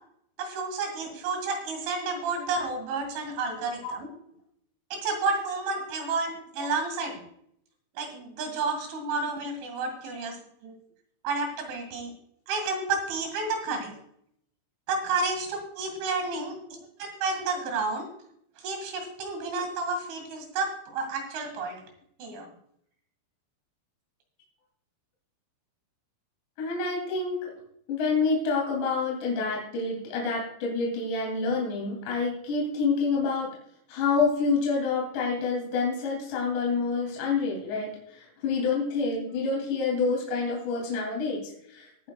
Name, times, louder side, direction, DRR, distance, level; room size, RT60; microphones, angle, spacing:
voice 1, 0.4-4.1 4.9-7.2 8.0-10.4 10.6-10.8 11.2-12.1 12.5-13.9 14.9-16.6 17.0-18.1 18.6-21.8 22.2-22.5, right 3 dB, 75° right, 4 dB, 4.3 m, -31 dB
voice 2, 26.6-27.4 27.9-33.5 33.9-42.1, left 4 dB, 60° left, -1 dB, 4.8 m, -28 dB
19.5 x 9.5 x 2.3 m, 0.69 s
omnidirectional pair, 5.7 m